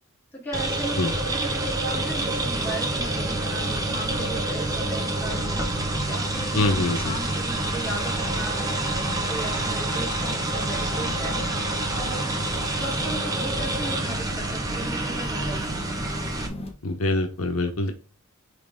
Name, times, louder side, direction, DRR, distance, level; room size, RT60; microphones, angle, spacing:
voice 1, 0.3-8.8 9.3-11.4 11.9-12.4 12.7-15.8, right 1 dB, 10° left, -4 dB, 3.1 m, -37 dB
sound 1, 0.5-16.5, right 2 dB, 15° right, 1.1 m, -27 dB
sound 2, 1.9-16.7, left 1 dB, 30° left, 1.0 m, -37 dB
voice 2, 6.5-7.2 16.8-17.9, left 2 dB, 70° left, 5 dB, 0.9 m, -24 dB
9.0 x 3.3 x 3.5 m, 0.33 s
head